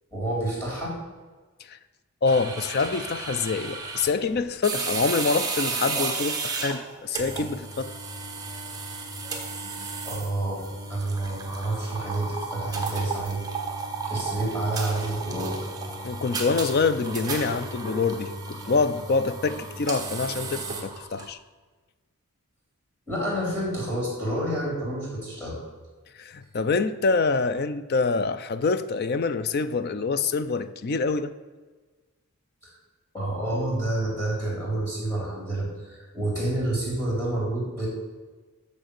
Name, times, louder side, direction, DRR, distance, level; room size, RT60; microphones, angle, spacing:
voice 1, 0.1-1.0 10.0-13.4 14.0-15.7 23.1-25.6 32.6-32.7 33.1-37.9, right 1 dB, 15° left, -5 dB, 3.3 m, -29 dB
voice 2, 2.2-7.9 16.0-21.4 26.2-31.3, left 4 dB, 45° left, 13 dB, 0.4 m, -26 dB
sound 1, 2.3-21.3, right 4 dB, 15° right, 1.1 m, -33 dB
6.9 x 6.3 x 6.8 m, 1.3 s
head